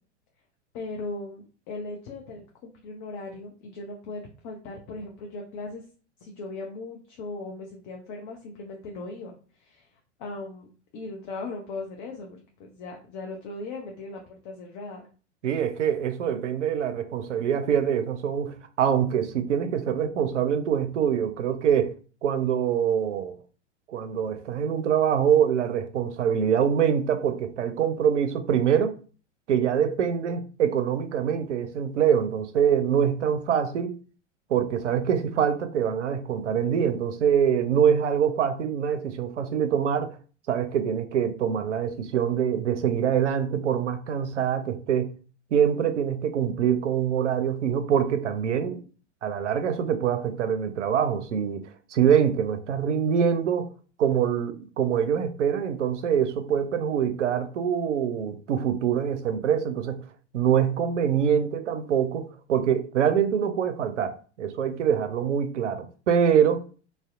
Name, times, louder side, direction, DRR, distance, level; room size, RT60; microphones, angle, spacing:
voice 1, 0.7-5.8 6.2-9.9 10.2-10.7 10.9-15.1, left 3 dB, 40° left, 0.5 m, -38 dB
voice 2, 15.4-21.9 22.2-23.4 23.9-28.9 29.5-33.9 34.5-40.2 40.5-45.1 45.5-48.8 49.2-51.6 51.9-53.7 54.0-60.1 60.3-66.6, right 8 dB, 80° right, 0.5 m, -24 dB
2.6 x 2.0 x 2.4 m
figure-of-eight pair, 95°, 36 cm